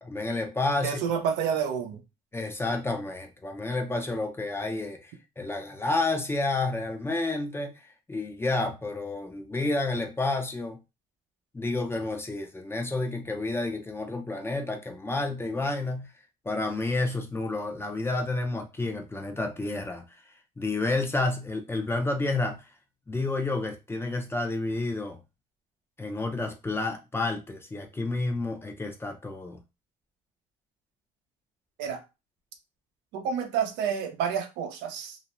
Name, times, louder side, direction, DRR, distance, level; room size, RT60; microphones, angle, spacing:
voice 1, 0.0-1.0 2.3-10.8 11.5-16.1 16.4-20.0 20.6-22.6 23.1-25.2 26.0-29.6, left 2 dB, 15° left, 0.5 m, -30 dB
voice 2, 0.8-2.0 31.8-32.0 33.1-35.2, right 7 dB, 90° right, 0.6 m, -29 dB
2.5 x 2.1 x 2.9 m
cardioid pair, 110°, 17 cm